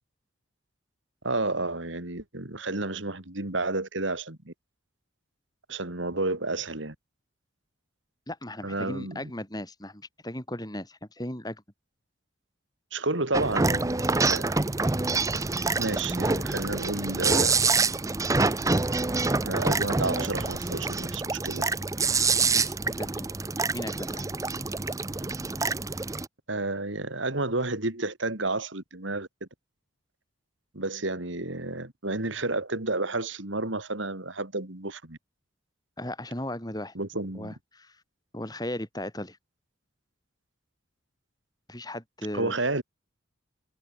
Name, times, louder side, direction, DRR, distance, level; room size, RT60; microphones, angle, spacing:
voice 1, 1.2-4.5 5.7-6.9 8.6-9.2 12.9-14.6 15.8-17.5 19.4-21.7 26.5-29.5 30.7-35.2 36.9-37.5 42.3-42.8, right 2 dB, 70° right, 2.8 m, -31 dB
voice 2, 8.3-11.6 22.5-23.3 23.7-24.3 36.0-36.9 37.3-38.0 38.3-39.4 41.7-42.5, left 1 dB, 20° left, 5.1 m, -36 dB
sound 1, 13.3-26.3, right 3 dB, 15° right, 0.6 m, -26 dB
head